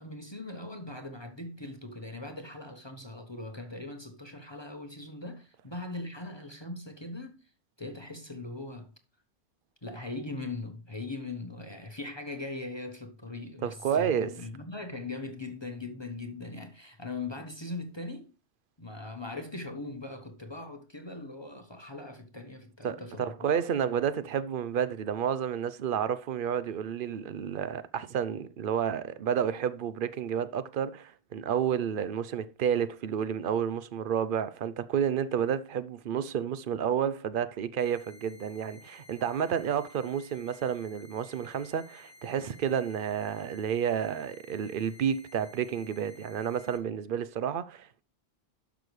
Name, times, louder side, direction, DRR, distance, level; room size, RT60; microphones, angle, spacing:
voice 1, 0.0-7.5 7.8-8.9 9.8-18.3 18.8-23.6, left 2 dB, 25° left, 0.9 m, -40 dB
voice 2, 13.6-14.3 22.8-48.0, right 8 dB, 55° right, 0.7 m, -30 dB
sound 1, 37.8-46.8, left 2 dB, 90° left, 1.6 m, -55 dB
11.5 x 6.1 x 3.2 m
omnidirectional pair, 1.3 m